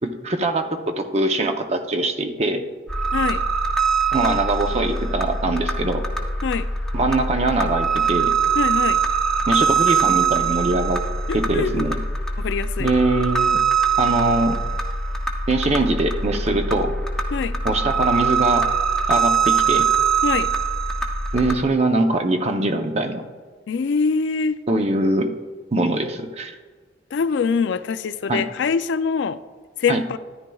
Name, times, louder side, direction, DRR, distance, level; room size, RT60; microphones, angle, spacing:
voice 1, 0.0-2.6 4.1-6.0 6.9-8.3 9.5-11.0 11.3-12.0 12.8-13.6 14.0-14.6 15.5-16.9 17.6-18.7 19.1-19.9 21.3-23.2 24.7-25.3 25.7-26.5 28.3-28.4 29.9-30.0, right 2 dB, 35° right, 6 dB, 0.7 m, -22 dB
sound 1, 2.9-21.6, right 5 dB, 5° left, 0.7 m, -22 dB
voice 2, 3.1-3.4 6.4-6.7 8.6-9.0 11.3-11.9 12.4-12.9 17.3-17.6 20.2-20.5 23.7-24.6 27.1-29.4 29.8-30.2, left 5 dB, 75° left, 14 dB, 0.4 m, -24 dB
13.5 x 10.5 x 2.3 m, 1.4 s
head